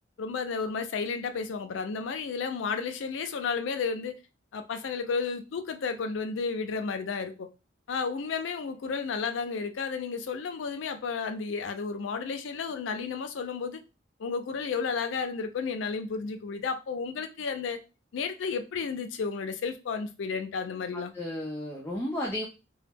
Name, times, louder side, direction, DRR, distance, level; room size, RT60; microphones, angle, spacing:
voice 1, 0.2-4.2 4.5-7.5 7.9-13.8 14.2-17.8 18.1-21.1, left 5 dB, 85° left, 0.4 m, -32 dB
voice 2, 20.9-22.5, left 1 dB, 10° left, 0.3 m, -33 dB
2.2 x 2.0 x 3.3 m
head